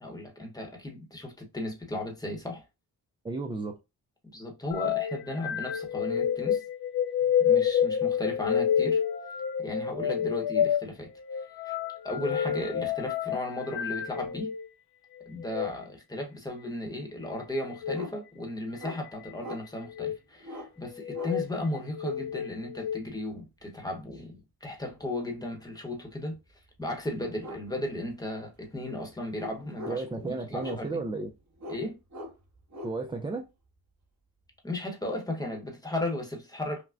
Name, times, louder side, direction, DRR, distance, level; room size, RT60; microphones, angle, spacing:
voice 1, 0.0-2.6 4.3-6.6 7.4-9.0 9.6-11.1 11.6-11.8 12.0-14.5 15.3-26.4 26.8-31.0 31.7-32.0 34.6-36.8, left 1 dB, 10° left, 0.9 m, -35 dB
voice 2, 3.2-3.7 29.9-31.3 32.8-33.5, right 3 dB, 15° right, 0.3 m, -33 dB
sound 1, 4.7-14.6 15.4-15.7 17.7-18.0 18.8-19.3 19.9-20.2 21.0-21.5 21.9-23.0, left 8 dB, 80° left, 0.6 m, -29 dB
sound 2, 17.9-18.1 18.8-19.0 19.4-19.6 20.4-20.7 21.1-21.4 23.4-23.6 26.5-26.6 27.4-27.6 27.9-28.0 28.4-28.8 29.3-30.1 30.6-31.1 31.6-31.8 32.1-32.9, left 1 dB, 50° right, 1.5 m, -40 dB
5.7 x 2.1 x 2.4 m
wide cardioid pair, 135°, 37 cm